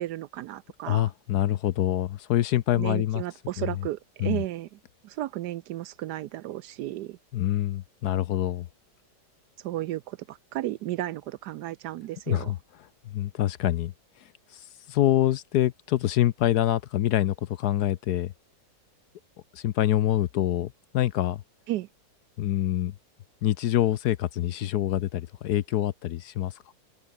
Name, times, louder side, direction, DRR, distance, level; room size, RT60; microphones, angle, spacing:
voice 1, 0.0-1.1 2.8-7.2 9.6-12.5 21.7-21.9, right 14 dB, 70° right, 1.0 m, -34 dB
voice 2, 0.9-3.2 3.6-3.7 4.2-4.4 7.3-8.7 12.3-12.6 13.0-13.9 14.5-18.3 19.5-21.4 22.4-22.9 23.4-26.7, left 13 dB, 70° left, 1.1 m, -26 dB
omnidirectional pair, 2.0 m